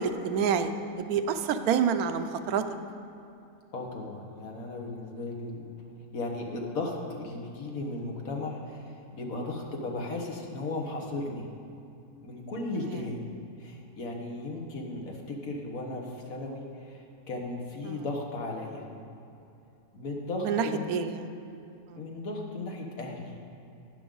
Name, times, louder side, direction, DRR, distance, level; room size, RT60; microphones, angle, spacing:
voice 1, 0.0-2.6 12.8-13.1 17.8-18.1 20.4-21.3 21.9-22.0, right 7 dB, 90° right, 9 dB, 1.1 m, -28 dB
voice 2, 3.7-5.6 6.1-11.5 12.2-13.2 13.6-18.8 19.9-20.9 21.9-23.4, left 2 dB, 65° left, 0 dB, 1.7 m, -36 dB
12.0 x 9.9 x 3.8 m, 2.7 s
omnidirectional pair, 1.5 m